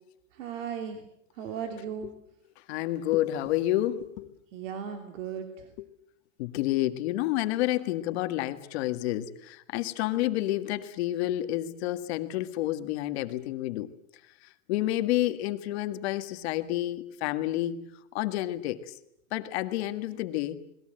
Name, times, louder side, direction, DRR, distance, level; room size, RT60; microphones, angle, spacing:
voice 1, 0.3-1.0 1.4-2.1 4.5-5.7, right 7 dB, 65° right, 6 dB, 3.0 m, -36 dB
voice 2, 2.7-4.3 6.4-13.9 14.7-17.9 18.1-18.8 19.3-20.6, left 15 dB, 50° left, 9 dB, 1.9 m, -29 dB
30.0 x 21.0 x 7.8 m, 0.74 s
supercardioid pair, 160°, 40 cm